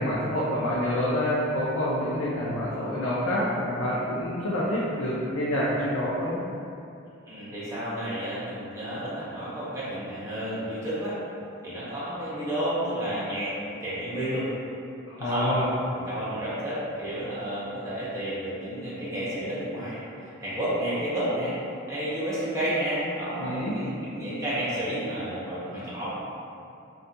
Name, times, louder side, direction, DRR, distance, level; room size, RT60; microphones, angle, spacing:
voice 1, 0.0-6.4 15.1-15.7 23.4-23.8, left 1 dB, 70° left, -7 dB, 0.4 m, -27 dB
voice 2, 7.3-11.2 11.6-14.5 15.2-15.6 15.9-20.0 20.4-21.6 21.9-26.1, right 1 dB, 15° right, -10 dB, 0.6 m, -31 dB
2.6 x 2.3 x 2.6 m, 2.6 s
head